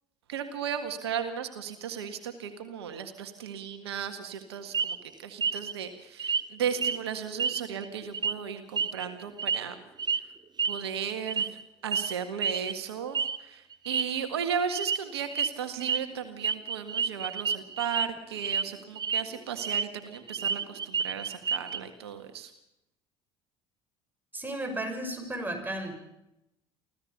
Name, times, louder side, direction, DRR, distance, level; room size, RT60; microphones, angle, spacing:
voice 1, 0.3-9.8 10.2-10.3 10.6-22.5, right 7 dB, 85° right, 8 dB, 1.8 m, -35 dB
sound 1, 4.7-5.0 5.4-5.7 6.2-6.5 6.8-7.0 7.4-7.9 8.1-8.3 8.8-9.6 10.0-10.2 10.6-10.8 11.3-11.6 11.9-12.1 12.4-12.7 13.1-13.4 13.7-14.0 14.7-15.0 15.3-15.5 15.8-16.0 16.4-18.1 18.4-18.6 18.9-19.8 20.1-21.8, right 6 dB, 30° right, 1.0 m, -29 dB
voice 2, 24.3-25.9, right 1 dB, 15° right, 4 dB, 6.3 m, -34 dB
25.0 x 16.0 x 6.7 m, 0.85 s
hypercardioid pair, 65°, 13 cm